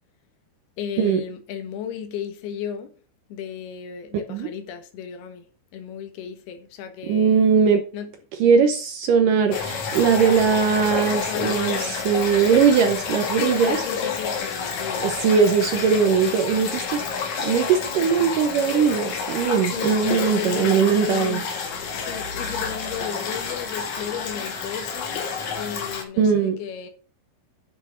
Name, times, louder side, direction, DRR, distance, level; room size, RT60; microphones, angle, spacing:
voice 1, 0.8-2.9 3.3-5.5 5.7-7.4 7.9-8.1 11.3-12.0 13.4-15.2 19.7-21.5 21.9-26.9, left 8 dB, 70° left, 3.4 m, -34 dB
voice 2, 7.0-7.8 8.4-13.8 15.0-17.0 17.4-21.4 26.2-26.6, right 6 dB, 70° right, 2.1 m, -20 dB
sound 1, 9.5-26.0, left 6 dB, 55° left, 2.5 m, -29 dB
10.0 x 6.1 x 5.9 m
omnidirectional pair, 4.8 m